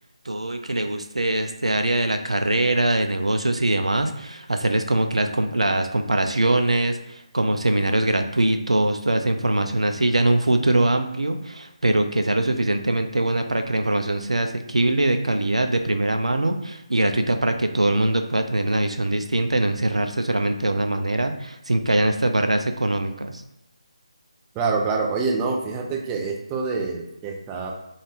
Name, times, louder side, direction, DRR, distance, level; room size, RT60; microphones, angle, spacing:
voice 1, 0.3-23.4, right 1 dB, 90° right, 6 dB, 0.3 m, -22 dB
voice 2, 24.6-27.7, right 4 dB, 15° right, 0 dB, 0.3 m, -26 dB
2.5 x 2.3 x 3.4 m, 0.85 s
figure-of-eight pair, 155°, 3 cm